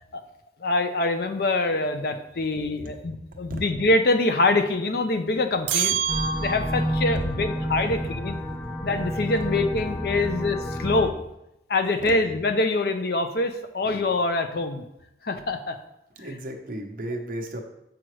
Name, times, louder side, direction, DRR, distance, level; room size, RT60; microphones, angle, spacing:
voice 1, 0.6-6.0 6.4-8.3 8.8-11.1 11.7-14.8 15.2-15.8, left 2 dB, 60° left, 8 dB, 0.5 m, -24 dB
sound 1, 5.7-7.0, right 8 dB, 85° right, 0.5 m, -27 dB
sound 2, 6.1-11.1, equal, 10° left, 0.5 m, -29 dB
voice 2, 16.2-17.6, right 1 dB, 50° right, 3 dB, 0.8 m, -34 dB
7.7 x 4.8 x 3.1 m, 0.86 s
head